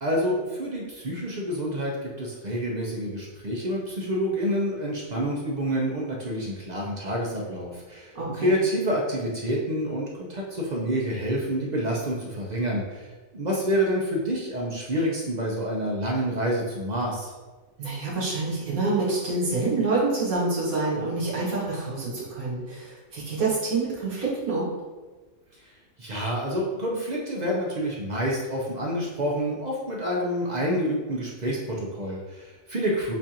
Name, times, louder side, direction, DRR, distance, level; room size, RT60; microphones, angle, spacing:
voice 1, 0.0-8.1 8.4-17.3 26.0-33.1, equal, 50° right, -3 dB, 0.5 m, -28 dB
voice 2, 8.1-8.5 17.8-24.7, right 3 dB, 80° right, -7 dB, 1.7 m, -27 dB
7.3 x 2.5 x 2.8 m, 1.3 s
omnidirectional pair, 1.5 m